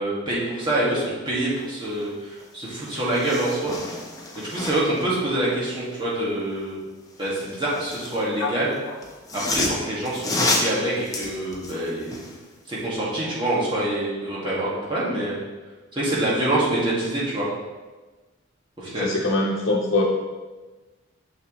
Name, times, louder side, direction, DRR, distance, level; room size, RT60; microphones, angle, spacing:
voice 1, 0.0-3.8 4.4-6.8 7.2-8.8 9.3-12.3 12.7-15.4 15.9-17.5 18.8-19.1, right 1 dB, 25° right, -8 dB, 1.8 m, -26 dB
sound 1, 2.4-2.5 2.8-5.0 7.1-8.2 9.0-12.4 12.8-12.9, left 2 dB, 15° left, 0.7 m, -29 dB
voice 2, 18.9-20.0, left 2 dB, 90° left, -4 dB, 0.8 m, -23 dB
6.8 x 5.9 x 3.0 m, 1.3 s
head